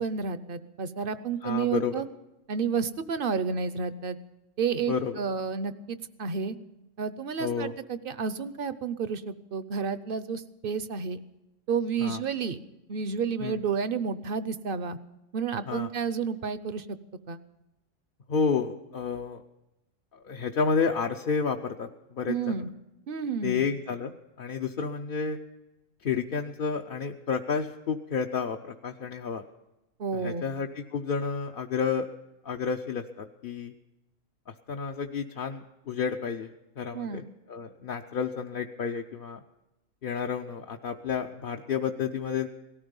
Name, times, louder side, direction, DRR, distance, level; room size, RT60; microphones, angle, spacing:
voice 1, 0.0-2.0 2.5-4.2 4.6-6.6 7.0-11.2 11.7-12.6 12.9-15.0 15.3-17.0 17.3-17.4 22.3-22.7 23.1-23.7 30.0-30.4 36.9-37.3, right 6 dB, 50° right, 13 dB, 0.8 m, -31 dB
voice 2, 1.4-1.9 4.9-5.1 7.4-7.7 12.0-12.2 13.4-13.6 15.7-15.9 18.3-19.4 20.1-22.5 23.4-25.4 26.0-29.4 30.1-32.1 32.4-33.7 34.5-36.5 36.8-39.4 40.0-42.5, left 6 dB, 50° left, 2 dB, 0.8 m, -31 dB
18.0 x 13.5 x 5.3 m, 0.97 s
omnidirectional pair, 1.3 m